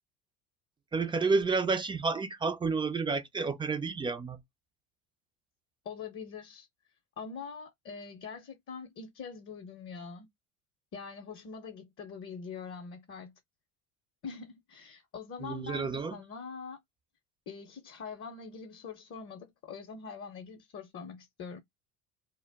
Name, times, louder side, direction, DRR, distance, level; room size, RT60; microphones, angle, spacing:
voice 1, 0.9-4.4 15.4-16.2, right 4 dB, 15° right, 0.3 m, -30 dB
voice 2, 5.8-6.7 7.2-10.3 10.9-13.3 14.2-16.8 17.5-21.6, left 5 dB, 30° left, 0.7 m, -43 dB
2.1 x 2.0 x 3.3 m
hypercardioid pair, 80°, 43 cm